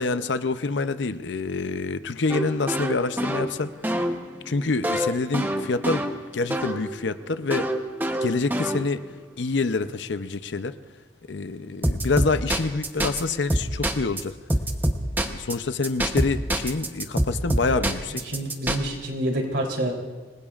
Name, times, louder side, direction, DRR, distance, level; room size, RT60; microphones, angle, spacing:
voice 1, 0.0-3.7 4.5-6.0 6.3-7.6 8.2-9.0 9.4-10.7 11.3-14.3 15.2-18.1, left 3 dB, 70° left, 11 dB, 0.6 m, -26 dB
sound 1, 2.3-6.9 7.5-9.1 11.8-13.2 13.5-14.2 14.5-15.5 15.8-18.8, right 1 dB, 10° right, 0.8 m, -26 dB
voice 2, 18.2-19.9, right 1 dB, 65° right, 1 dB, 3.4 m, -27 dB
26.5 x 20.5 x 2.5 m, 1.3 s
head